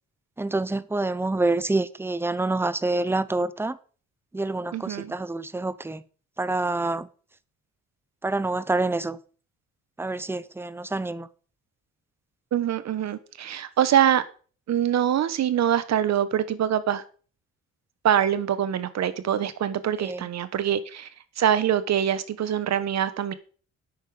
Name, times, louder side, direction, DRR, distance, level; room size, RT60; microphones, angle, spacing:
voice 1, 0.4-3.8 4.3-6.0 6.4-7.1 8.2-9.2 10.0-11.3 20.0-20.3, right 2 dB, 10° right, 0.7 m, -27 dB
voice 2, 4.7-5.1 12.5-14.2 14.7-17.0 18.0-21.1 21.4-23.3, right 10 dB, 60° right, 1.2 m, -24 dB
9.9 x 8.5 x 5.0 m
cardioid pair, 90°, 30 cm